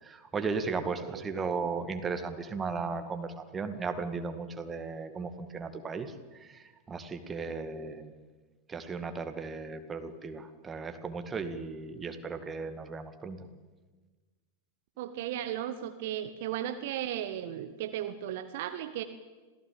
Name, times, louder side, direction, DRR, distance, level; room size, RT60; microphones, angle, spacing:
voice 1, 0.0-8.1 8.7-13.4, right 4 dB, 20° right, 8 dB, 2.2 m, -36 dB
voice 2, 15.0-19.0, right 11 dB, 50° right, 9 dB, 1.2 m, -35 dB
26.5 x 17.0 x 8.9 m, 1.3 s
figure-of-eight pair, 90°, 0 cm